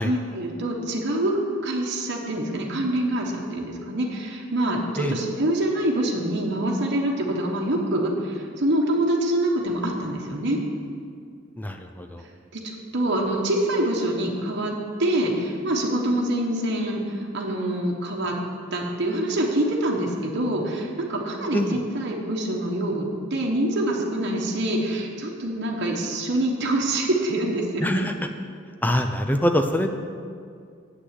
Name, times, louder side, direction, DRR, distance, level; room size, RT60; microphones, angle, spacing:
voice 1, 0.0-1.3 1.6-10.6 12.5-14.7 15.0-18.4 18.7-28.1, right 1 dB, 60° right, -1 dB, 1.2 m, -25 dB
voice 2, 11.6-12.2 21.5-21.8 27.8-28.3 28.8-29.9, left 1 dB, 10° left, 5 dB, 0.4 m, -24 dB
7.9 x 6.2 x 8.0 m, 2.2 s
head